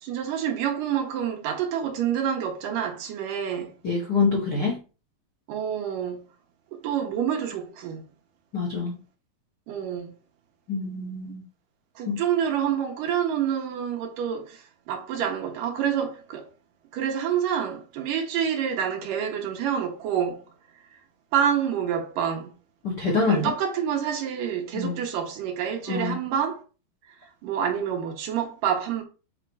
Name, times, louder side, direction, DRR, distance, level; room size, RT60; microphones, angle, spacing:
voice 1, 0.0-3.7 5.5-6.2 6.7-8.0 9.7-10.1 12.0-16.5 16.9-20.4 21.3-22.5 23.3-26.6 27.4-29.0, right 8 dB, 70° right, 2.4 m, -27 dB
voice 2, 3.8-4.8 8.5-9.0 10.7-11.4 12.0-12.2 22.8-23.5 24.7-25.0 25.9-26.2, left 4 dB, 65° left, 1.0 m, -25 dB
7.6 x 2.8 x 4.7 m
omnidirectional pair, 4.3 m